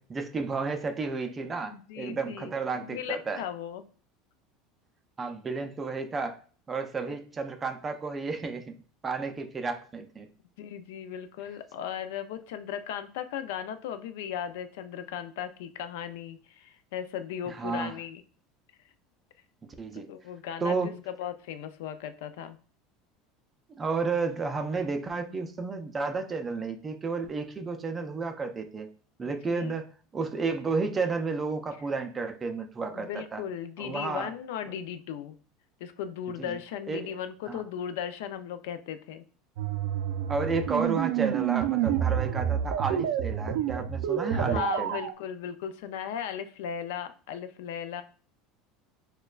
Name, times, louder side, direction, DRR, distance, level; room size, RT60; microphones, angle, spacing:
voice 1, 0.0-3.4 5.2-6.4 6.7-8.7 9.0-10.3 17.5-18.0 19.8-20.1 20.6-21.0 23.7-28.9 29.2-33.4 33.8-34.3 36.4-36.6 36.9-37.1 37.5-37.6 40.3-45.0, right 4 dB, 15° right, 6 dB, 0.3 m, -32 dB
voice 2, 1.7-2.5 2.8-3.8 10.6-18.2 20.1-22.6 29.2-29.7 32.9-35.4 35.8-39.2 44.3-48.0, left 9 dB, 75° left, 10 dB, 0.4 m, -37 dB
sound 1, 39.6-45.1, right 9 dB, 75° right, 0.5 m, -28 dB
6.4 x 2.2 x 2.3 m, 0.40 s
cardioid pair, 180°, 0 cm